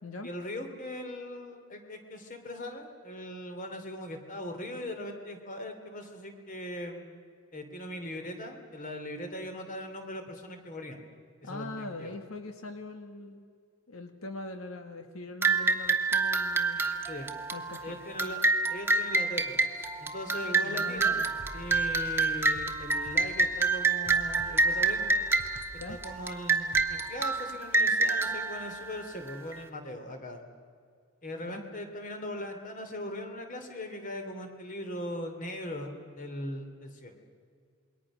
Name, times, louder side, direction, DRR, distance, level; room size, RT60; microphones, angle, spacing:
voice 1, 0.2-7.2 7.5-11.0 11.4-12.1 17.1-17.3 17.8-18.4 18.7-21.2 21.5-25.2 25.9-30.4 31.2-37.2, left 1 dB, 40° left, 6 dB, 2.9 m, -40 dB
voice 2, 11.4-13.5 13.9-16.8 17.5-18.0 20.6-21.3 25.8-26.0 31.4-31.6, left 2 dB, 85° left, 6 dB, 1.6 m, -42 dB
sound 1, 15.4-29.5, right 3 dB, 10° right, 1.3 m, -28 dB
sound 2, 21.0-26.8, equal, 55° left, 3.3 m, -49 dB
27.5 x 22.0 x 6.2 m, 2.2 s
head